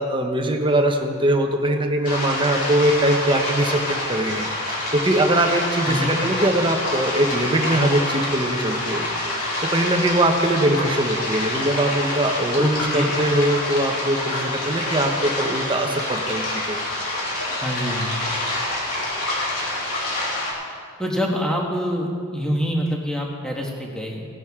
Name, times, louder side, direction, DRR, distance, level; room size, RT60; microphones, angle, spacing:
voice 1, 0.0-16.8, right 1 dB, 20° right, 3 dB, 1.0 m, -22 dB
sound 1, 2.0-20.5, left 1 dB, 75° left, 3.2 m, -27 dB
voice 2, 5.9-6.2 12.6-13.1 17.6-18.2 21.0-24.3, equal, 5° left, -1 dB, 1.6 m, -25 dB
18.0 x 10.5 x 3.7 m, 2.2 s
head